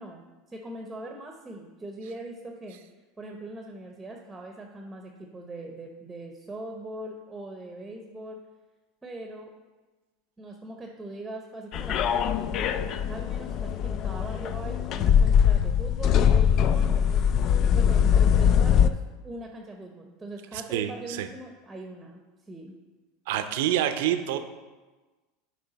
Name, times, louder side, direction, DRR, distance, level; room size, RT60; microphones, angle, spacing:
voice 1, 0.0-2.8 3.2-8.4 9.0-9.5 10.4-17.2 17.7-22.7, right 1 dB, 15° right, 2 dB, 0.8 m, -41 dB
sound 1, 11.7-18.9, left 8 dB, 50° left, 0.3 m, -22 dB
voice 2, 23.3-24.4, right 11 dB, 70° right, 9 dB, 0.5 m, -26 dB
9.5 x 3.3 x 4.0 m, 1.2 s
hypercardioid pair, 95°, 0 cm